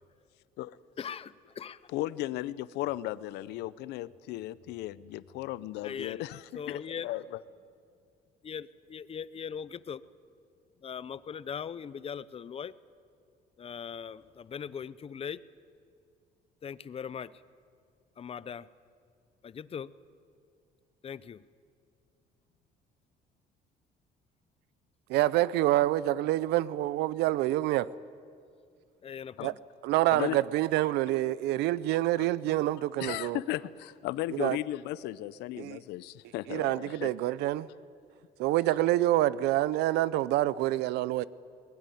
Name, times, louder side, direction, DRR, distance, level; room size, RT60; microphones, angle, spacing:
voice 1, 1.0-1.8 5.8-6.2 6.5-7.1 8.4-10.0 10.8-12.7 13.6-15.4 16.6-17.4 18.2-18.7 19.4-19.9 21.0-21.5 29.0-29.6, left 7 dB, 35° left, 0.7 m, -40 dB
voice 2, 1.9-7.4 29.4-29.5 30.1-30.4 32.2-32.3 33.0-37.1, left 15 dB, 85° left, 0.6 m, -36 dB
voice 3, 25.1-27.9 29.4-29.5 29.8-33.4 34.3-34.6 35.6-35.8 36.5-37.7 38.4-41.2, right 15 dB, 90° right, 0.6 m, -27 dB
22.0 x 20.0 x 9.3 m
cardioid pair, 110°, 17 cm